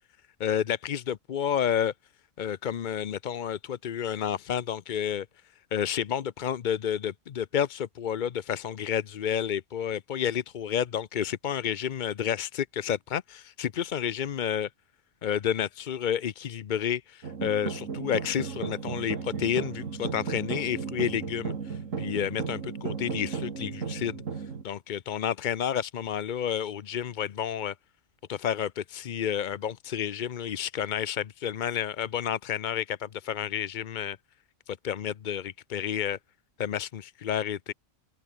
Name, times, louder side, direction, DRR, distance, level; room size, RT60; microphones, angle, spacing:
voice 1, 0.4-1.9 2.4-5.3 5.7-14.7 15.2-24.1 24.6-27.7 28.3-34.2 34.7-36.2 36.6-37.7, left 9 dB, 50° left, 0.6 m, -30 dB
sound 1, 17.2-24.6, right 5 dB, 80° right, 2.1 m, -35 dB
open air
omnidirectional pair, 1.3 m